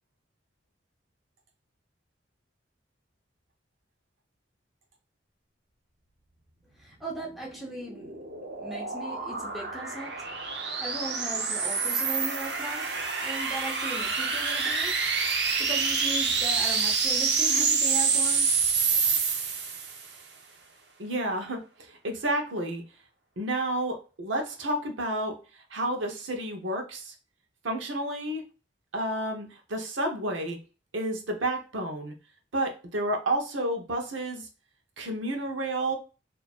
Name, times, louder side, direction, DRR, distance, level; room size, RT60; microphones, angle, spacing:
voice 1, 6.8-8.1 8.6-10.3 10.8-15.0 15.6-18.6, right 1 dB, ahead, 1.0 m, -38 dB
sound 1, 7.5-20.1, right 5 dB, 65° right, 0.7 m, -27 dB
voice 2, 21.0-22.8 23.4-27.1 27.6-28.4 28.9-30.6 30.9-32.1 32.5-34.5 35.0-35.9, right 1 dB, 90° right, 1.0 m, -30 dB
4.3 x 2.8 x 2.4 m
head